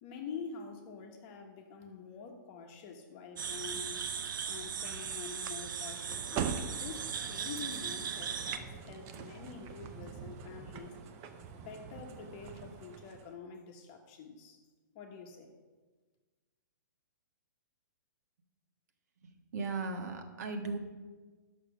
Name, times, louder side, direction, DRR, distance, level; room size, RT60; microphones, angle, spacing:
voice 1, 0.0-4.1 4.5-10.9 11.5-14.6 14.9-15.5, left 5 dB, 30° left, 3 dB, 1.2 m, -47 dB
sound 1, 3.4-8.6, right 7 dB, 70° right, 0.8 m, -38 dB
sound 2, 6.1-13.3, right 7 dB, 25° right, 0.6 m, -43 dB
voice 2, 19.2-20.8, right 3 dB, 50° right, 5 dB, 1.5 m, -37 dB
11.0 x 6.6 x 6.0 m, 1.3 s
hypercardioid pair, 165°, 11 cm